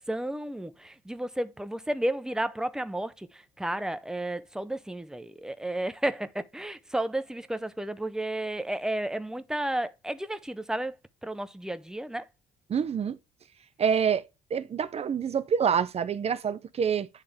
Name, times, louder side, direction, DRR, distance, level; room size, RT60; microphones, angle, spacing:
voice 1, 0.0-3.3 3.6-11.0 11.2-12.3, right 1 dB, 5° right, 0.7 m, -32 dB
voice 2, 12.7-13.2 13.8-14.2 14.5-17.1, right 7 dB, 40° right, 0.8 m, -26 dB
9.8 x 3.5 x 5.0 m
cardioid pair, 110°, 17 cm